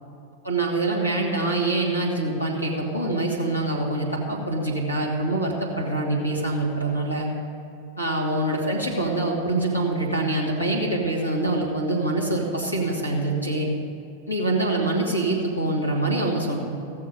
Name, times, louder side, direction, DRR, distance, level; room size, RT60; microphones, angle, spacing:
voice 1, 0.4-7.3 8.0-13.7 14.3-16.6, right 2 dB, 85° left, -2 dB, 2.1 m, -25 dB
16.5 x 6.9 x 5.2 m, 2.6 s
figure-of-eight pair, 90°, 0 cm